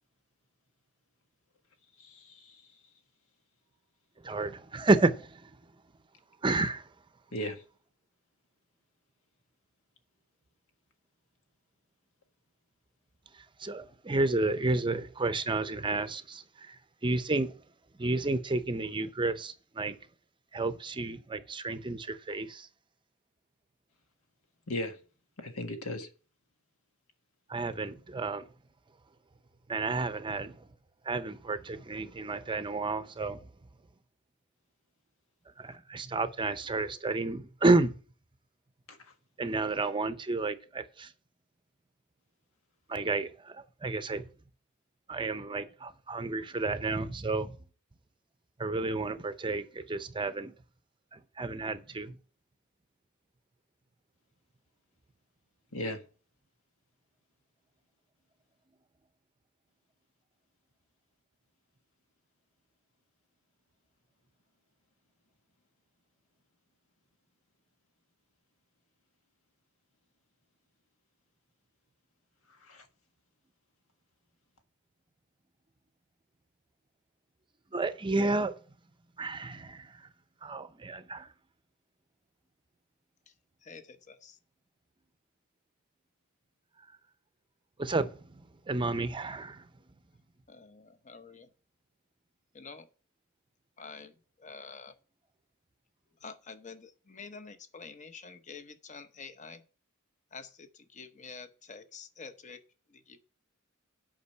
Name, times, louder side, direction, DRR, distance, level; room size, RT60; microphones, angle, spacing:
voice 1, 2.0-2.6 7.3-7.6 24.7-25.0 25.4-26.1 38.9-39.0 55.7-56.0 72.6-72.8, left 1 dB, 85° left, 1.6 m, -37 dB
voice 2, 4.2-5.5 6.4-6.9 13.6-16.8 17.0-17.5 18.0-20.0 20.5-22.7 27.5-28.5 29.7-30.6 31.0-33.4 35.6-37.9 39.4-41.1 42.9-44.3 45.1-47.6 48.6-50.5 51.1-52.2 77.7-78.5 79.2-80.0 80.4-81.3 87.8-89.6, right 3 dB, 25° right, 0.6 m, -31 dB
voice 3, 83.6-84.4 90.5-91.5 92.5-92.9 93.8-95.0 96.2-99.6 100.3-102.6 102.9-103.2, left 5 dB, 35° left, 0.8 m, -48 dB
8.4 x 5.3 x 6.5 m
head